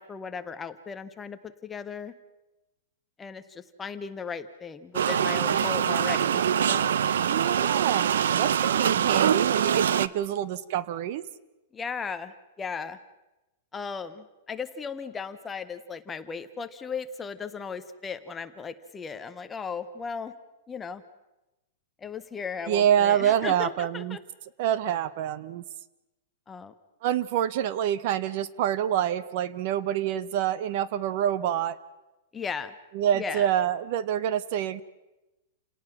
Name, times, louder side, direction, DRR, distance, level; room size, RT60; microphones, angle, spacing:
voice 1, 0.0-2.1 3.2-6.9 11.7-13.0 13.7-20.3 20.7-21.0 22.0-24.2 26.5-26.7 32.3-32.7 33.1-33.5, left 5 dB, 10° left, 10 dB, 0.7 m, -36 dB
sound 1, 4.9-10.1, right 8 dB, 75° right, 0.6 m, -24 dB
voice 2, 7.3-11.2 22.7-24.2 24.6-25.6 27.0-31.8 32.9-34.8, right 10 dB, 35° right, 17 dB, 0.7 m, -26 dB
29.0 x 18.5 x 5.9 m, 1.0 s
supercardioid pair, 175°, 0 cm